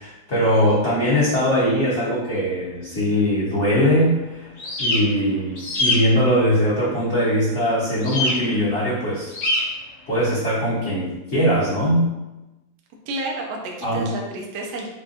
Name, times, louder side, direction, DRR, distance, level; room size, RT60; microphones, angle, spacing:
voice 1, 0.0-4.5 4.8-9.3 10.1-12.1 13.8-14.1, equal, 40° left, -11 dB, 1.2 m, -21 dB
sound 1, 4.6-5.0 5.6-6.0 8.0-8.3 9.3-9.6, left 1 dB, 65° left, 1.8 m, -22 dB
voice 2, 13.1-14.9, right 2 dB, 75° right, 0 dB, 0.9 m, -31 dB
5.0 x 2.2 x 2.6 m, 1.0 s
omnidirectional pair, 2.3 m